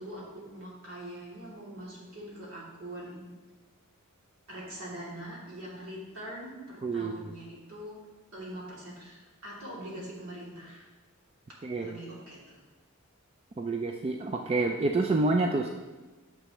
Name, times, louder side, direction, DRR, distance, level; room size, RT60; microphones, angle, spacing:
voice 1, 0.0-3.2 4.5-8.0 8.3-10.9 11.8-12.6, right 1 dB, 65° right, -5 dB, 2.8 m, -43 dB
voice 2, 6.8-7.3 11.6-11.9 13.6-15.7, right 3 dB, 25° right, 3 dB, 0.4 m, -28 dB
9.8 x 6.6 x 3.1 m, 1.2 s
head